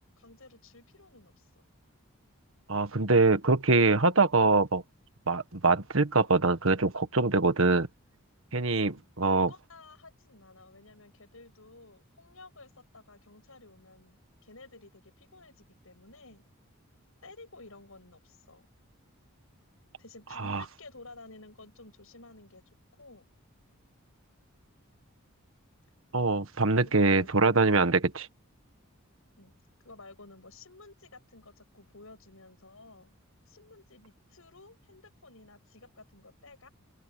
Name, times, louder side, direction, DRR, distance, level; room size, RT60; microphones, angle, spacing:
voice 1, 0.2-1.7 9.2-16.4 17.2-18.7 20.0-22.6 23.0-23.3 26.8-27.8 29.4-29.5 29.8-33.1 33.5-36.7, left 3 dB, 70° left, 6.6 m, -53 dB
voice 2, 2.7-4.8 5.3-7.9 8.5-9.5 20.4-20.6 26.1-28.3, right 3 dB, 65° right, 1.5 m, -24 dB
open air
head